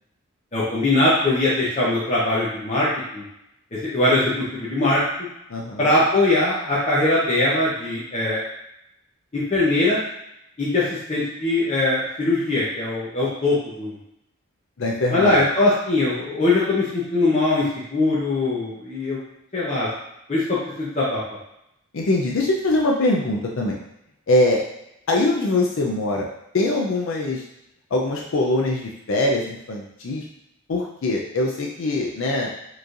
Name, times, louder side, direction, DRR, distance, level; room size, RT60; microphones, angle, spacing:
voice 1, 0.5-2.9 3.1-3.2 3.7-5.0 5.8-8.4 9.3-10.0 10.6-10.8 11.1-14.0 15.1-19.2 19.5-19.9 20.3-21.2, left 2 dB, 35° left, -8 dB, 0.7 m, -21 dB
voice 2, 5.5-5.9 14.8-15.4 21.9-23.8 24.3-24.6 25.1-26.3 26.5-27.4 27.9-30.2 30.7-32.5, left 2 dB, 65° left, -1 dB, 0.5 m, -22 dB
4.6 x 3.2 x 2.5 m, 0.82 s
head